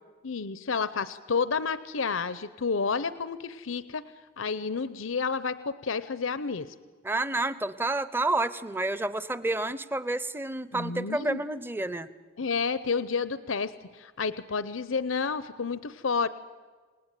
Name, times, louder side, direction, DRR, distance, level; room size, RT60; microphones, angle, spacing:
voice 1, 0.2-4.1 4.4-6.7 10.7-11.4 12.4-16.3, left 5 dB, 80° left, 14 dB, 0.8 m, -30 dB
voice 2, 7.0-12.1, right 2 dB, 10° right, 15 dB, 0.7 m, -29 dB
28.5 x 19.0 x 9.1 m, 1.4 s
head